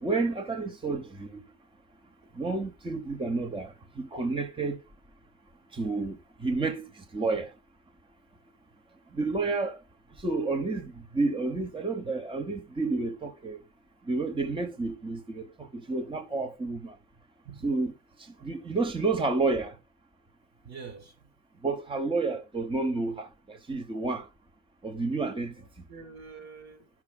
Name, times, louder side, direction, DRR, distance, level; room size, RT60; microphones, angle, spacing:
voice 1, 0.0-1.4 2.3-4.8 5.7-7.5 9.1-9.8 10.2-13.6 14.1-16.9 17.6-17.9 18.4-19.8 21.6-24.3 24.8-25.5, right 3 dB, 15° right, 0.9 m, -30 dB
voice 2, 20.6-21.3 25.5-26.9, right 5 dB, 60° right, 2.4 m, -46 dB
12.0 x 6.0 x 2.2 m
cardioid pair, 90°, 30 cm